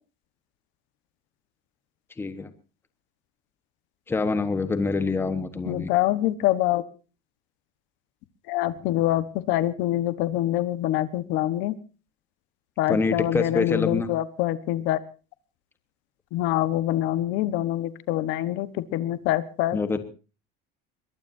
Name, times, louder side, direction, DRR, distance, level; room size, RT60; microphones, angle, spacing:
voice 1, 2.2-2.5 4.1-5.9 12.9-14.1 19.7-20.0, left 4 dB, 10° left, 10 dB, 1.2 m, -26 dB
voice 2, 5.6-6.8 8.5-11.7 12.8-15.0 16.3-19.8, left 14 dB, 65° left, 14 dB, 1.3 m, -25 dB
22.0 x 22.0 x 2.7 m, 0.34 s
cardioid pair, 175°, 21 cm